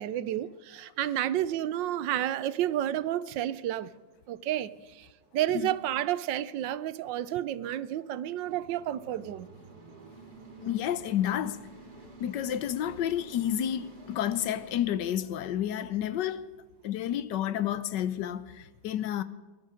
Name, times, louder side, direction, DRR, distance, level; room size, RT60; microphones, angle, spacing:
voice 1, 0.0-3.9 4.3-5.1 5.3-9.5, right 12 dB, 75° right, 1.3 m, -31 dB
sound 1, 8.4-14.8, right 2 dB, 55° right, 3.3 m, -50 dB
voice 2, 10.6-11.7 12.2-16.5 16.8-19.2, left 10 dB, 70° left, 1.3 m, -30 dB
21.0 x 11.5 x 5.0 m
omnidirectional pair, 2.0 m